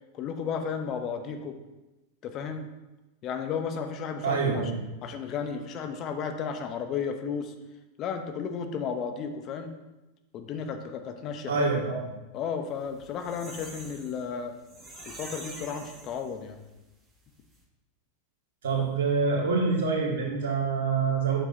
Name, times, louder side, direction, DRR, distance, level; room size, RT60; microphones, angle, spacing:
voice 1, 0.1-1.5 2.2-2.7 3.2-4.6 5.0-7.5 8.0-9.7 10.3-11.7 12.3-14.5 15.1-16.6, left 6 dB, 40° left, 7 dB, 0.9 m, -33 dB
voice 2, 4.2-4.8 11.5-12.1 18.6-21.4, right 4 dB, 70° right, -3 dB, 2.1 m, -26 dB
sound 1, 12.8-16.7 17.1-17.2 17.4-17.6, right 2 dB, 20° right, 2.0 m, -45 dB
8.9 x 7.1 x 2.8 m, 1.0 s
hypercardioid pair, 95°, 0 cm